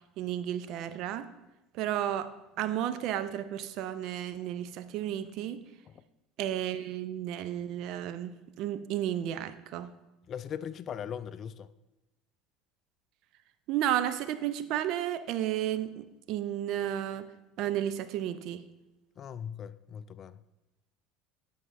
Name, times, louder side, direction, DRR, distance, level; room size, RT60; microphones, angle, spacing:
voice 1, 0.2-1.3 1.7-5.6 6.4-9.9 13.7-17.3 17.6-18.6, right 11 dB, 60° right, 0.5 m, -33 dB
voice 2, 10.3-11.7 19.2-20.4, left 8 dB, 45° left, 0.3 m, -39 dB
12.5 x 5.5 x 2.5 m
hypercardioid pair, 75°, 0 cm